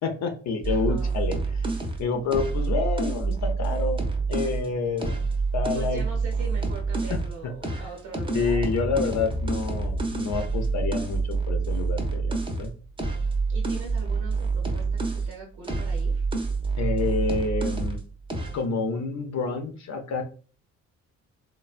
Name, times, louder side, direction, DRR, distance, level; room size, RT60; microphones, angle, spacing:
voice 1, 0.0-4.0 4.3-6.0 7.1-7.8 8.3-12.7 16.8-18.0 18.5-20.2, left 4 dB, 65° left, 5 dB, 0.6 m, -29 dB
sound 1, 0.6-4.6 5.0-7.3 7.6-15.3 15.6-18.0 18.3-18.6, right 4 dB, 15° right, 0.6 m, -27 dB
voice 2, 0.6-1.1 5.7-8.6 13.5-16.3, right 3 dB, 90° right, -1 dB, 0.9 m, -41 dB
3.2 x 2.1 x 2.4 m, 0.38 s
cardioid pair, 90°, 30 cm